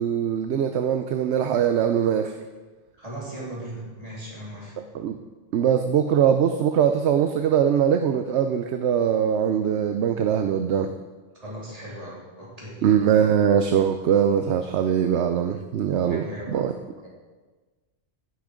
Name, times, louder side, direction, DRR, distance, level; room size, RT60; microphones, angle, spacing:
voice 1, 0.0-2.3 4.8-5.2 5.5-10.9 12.8-16.7, right 8 dB, 70° right, 7 dB, 0.9 m, -22 dB
voice 2, 3.0-4.8 11.4-13.1 14.6-14.8 16.0-16.6 17.0-17.1, right 1 dB, 30° right, -6 dB, 3.7 m, -38 dB
17.5 x 6.0 x 5.1 m, 1.3 s
omnidirectional pair, 1.2 m